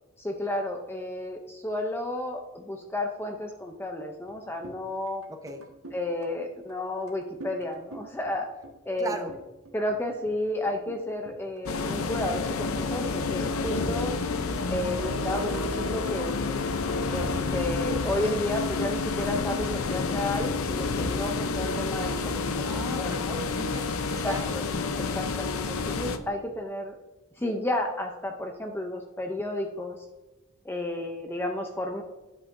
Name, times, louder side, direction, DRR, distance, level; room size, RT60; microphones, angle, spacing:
voice 1, 0.2-5.2 5.9-8.5 8.9-9.1 9.7-14.1 14.7-16.3 17.1-22.7 23.0-23.4 24.2-24.7 25.0-27.0 27.4-30.0 30.6-32.0, left 1 dB, 10° left, 2 dB, 0.6 m, -32 dB
sound 1, 4.3-4.4 4.6-4.8 5.1-6.3 6.7-6.8 7.1-9.0 9.3-10.0 10.3-10.4 10.6-11.0 11.3-12.4 12.7-13.9, right 2 dB, 85° right, 1.6 m, -45 dB
voice 2, 5.3-5.6 9.0-9.3 22.5-24.6, right 1 dB, 15° right, 5 dB, 0.9 m, -38 dB
sound 2, 11.7-26.2, left 3 dB, 70° left, 0.7 m, -29 dB
11.0 x 7.7 x 2.6 m, 1.1 s
head